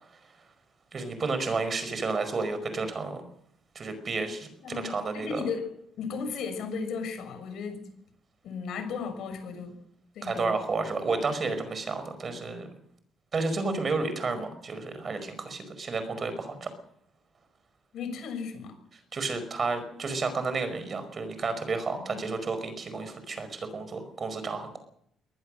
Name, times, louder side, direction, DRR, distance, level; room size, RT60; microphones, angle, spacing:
voice 1, 0.9-3.2 3.8-5.4 10.2-12.7 13.3-16.7 19.1-24.8, right 3 dB, 30° right, 10 dB, 5.0 m, -31 dB
voice 2, 4.6-5.7 6.0-7.9 8.4-9.8 10.1-10.6 17.9-18.8 21.9-22.2, left 5 dB, 65° left, 8 dB, 6.4 m, -35 dB
23.0 x 19.0 x 6.5 m, 0.70 s
cardioid pair, 140°, 0 cm